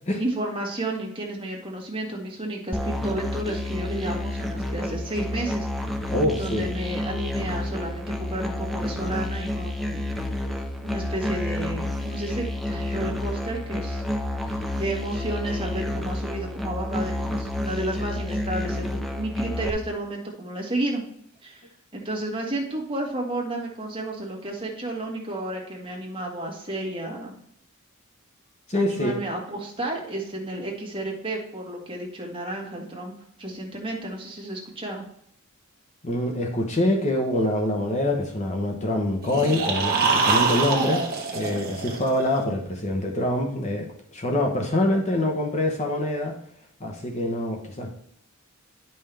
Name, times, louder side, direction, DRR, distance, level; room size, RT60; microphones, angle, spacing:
voice 1, 0.2-5.7 6.4-10.1 10.8-14.0 14.5-21.0 21.4-21.7 21.9-27.4 28.7-33.1 33.4-35.1, right 1 dB, 25° right, -1 dB, 1.8 m, -32 dB
Musical instrument, 2.7-19.7, left 1 dB, ahead, 0.6 m, -30 dB
voice 2, 6.1-6.7 28.7-29.2 36.0-41.0 41.3-46.3 46.8-47.9, left 1 dB, 30° left, 2 dB, 1.0 m, -25 dB
sound 1, 39.2-42.4, right 4 dB, 45° right, 1.4 m, -25 dB
10.5 x 5.6 x 3.4 m, 0.70 s
head